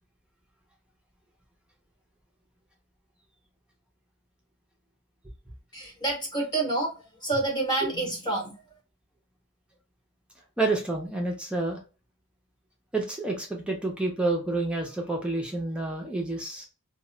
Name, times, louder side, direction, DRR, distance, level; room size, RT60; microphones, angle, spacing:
voice 1, 5.7-6.9 7.2-8.6, right 2 dB, 20° left, -2 dB, 0.7 m, -28 dB
voice 2, 10.6-11.8 12.9-16.7, right 2 dB, 5° right, 0 dB, 0.4 m, -29 dB
2.0 x 2.0 x 3.7 m, 0.32 s
head